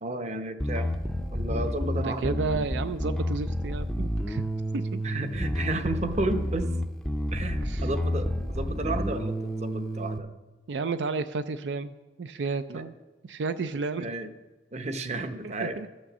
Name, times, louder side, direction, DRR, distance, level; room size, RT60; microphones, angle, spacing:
voice 1, 0.0-0.9 1.3-2.3 5.0-6.7 7.3-10.3 12.7-12.8 14.0-14.3 14.7-15.8, right 2 dB, 40° right, 8 dB, 0.8 m, -32 dB
Bass guitar, 0.6-10.2, equal, 5° left, 0.5 m, -30 dB
voice 2, 1.9-4.4 4.7-5.0 7.6-7.9 10.7-12.9 13.2-14.1 15.4-15.9, right 4 dB, 80° right, 10 dB, 0.4 m, -32 dB
13.0 x 6.3 x 7.3 m, 1.2 s
head